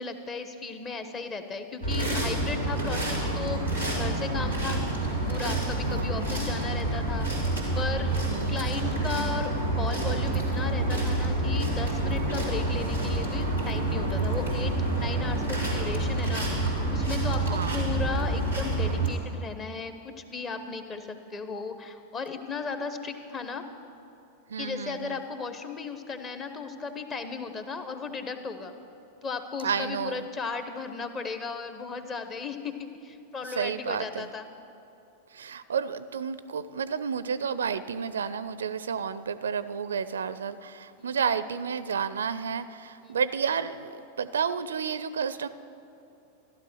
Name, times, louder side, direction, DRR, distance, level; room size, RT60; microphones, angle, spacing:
voice 1, 0.0-3.6 4.0-4.8 5.3-7.3 7.7-8.2 8.5-16.5 16.9-23.6 24.6-28.7 29.2-34.5 41.0-41.2 43.0-43.2, left 5 dB, 25° left, 8 dB, 1.1 m, -36 dB
sound 1, 1.8-19.1, right 2 dB, 85° left, 3.9 m, -28 dB
voice 2, 8.3-8.6 17.4-17.9 24.5-25.2 29.6-30.3 33.6-34.3 35.3-45.5, right 6 dB, 65° right, 15 dB, 0.4 m, -31 dB
14.5 x 12.0 x 6.2 m, 2.8 s
figure-of-eight pair, 90°, 0 cm